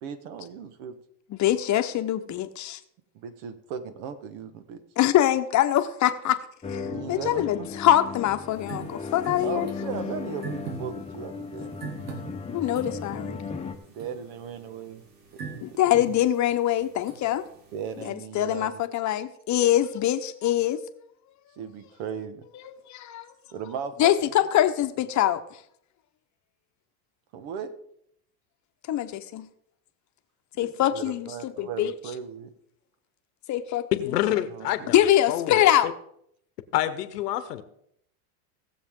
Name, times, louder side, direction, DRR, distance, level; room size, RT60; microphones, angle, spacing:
voice 1, 0.0-0.9 3.1-4.8 6.9-7.7 9.4-11.8 13.9-15.0 15.5-15.9 17.7-18.7 21.6-22.4 23.5-24.7 27.3-27.7 30.6-32.5 34.2-34.9, right 7 dB, 65° right, 11 dB, 1.5 m, -37 dB
voice 2, 1.3-2.8 5.0-6.4 6.7-6.8 7.1-9.7 12.5-13.4 15.6-17.4 18.1-20.8 22.7-23.3 24.0-25.4 28.9-29.5 30.6-31.9 33.5-33.8 34.9-35.9, left 12 dB, 40° left, 9 dB, 1.0 m, -24 dB
sound 1, 6.6-13.8, left 5 dB, 15° left, 1.0 m, -36 dB
sound 2, 8.5-18.1, right 5 dB, 90° right, 2.3 m, -43 dB
voice 3, 33.9-35.0 35.3-35.9 36.7-37.6, left 13 dB, 90° left, 12 dB, 1.2 m, -27 dB
18.5 x 7.2 x 3.7 m, 0.72 s
supercardioid pair, 110°, 46 cm